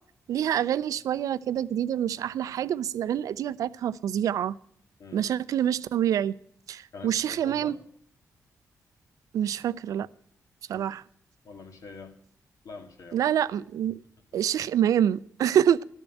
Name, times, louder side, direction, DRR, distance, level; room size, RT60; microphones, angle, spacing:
voice 1, 0.3-4.5 5.1-6.3 6.7-7.7 9.3-10.1 10.7-11.0 13.1-14.0 14.3-15.8, right 10 dB, 80° right, 0.4 m, -26 dB
voice 2, 5.0-5.3 6.9-7.8 10.7-10.9 11.4-12.1 12.6-13.3, left 4 dB, 75° left, 1.9 m, -44 dB
11.5 x 7.2 x 8.9 m
cardioid pair, 65°, 6 cm